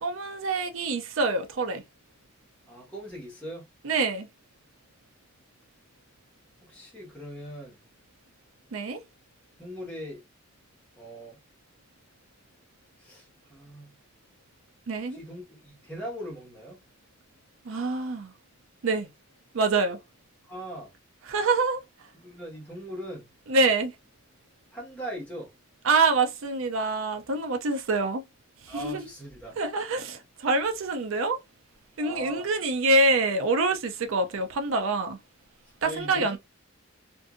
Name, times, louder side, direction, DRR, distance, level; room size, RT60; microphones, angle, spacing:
voice 1, 0.0-1.8 3.8-4.3 8.7-9.0 14.9-15.2 17.6-18.3 18.8-19.1 19.5-20.0 21.2-22.1 23.5-23.9 25.8-28.2 28.6-29.1 29.6-31.4 32.0-35.2 35.8-36.4, right 3 dB, 85° right, 0.5 m, -26 dB
voice 2, 2.7-3.7 6.6-7.8 9.6-10.2 11.0-11.4 13.0-14.0 15.1-16.8 20.5-20.9 22.2-23.3 24.7-25.5 28.7-29.6 32.0-32.5 35.8-36.4, equal, 5° left, 1.3 m, -40 dB
2.6 x 2.6 x 2.4 m
head